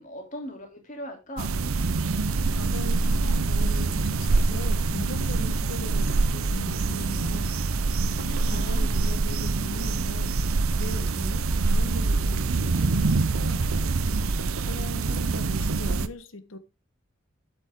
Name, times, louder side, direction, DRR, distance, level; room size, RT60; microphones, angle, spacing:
voice 1, 0.0-1.5 8.4-9.0, equal, 35° left, 2.8 m, -39 dB
sound 1, 1.4-16.1, right 3 dB, 85° right, 0.7 m, -25 dB
voice 2, 2.5-7.6 8.1-13.7 14.6-16.6, left 2 dB, 70° left, 1.3 m, -40 dB
8.9 x 8.4 x 3.7 m
head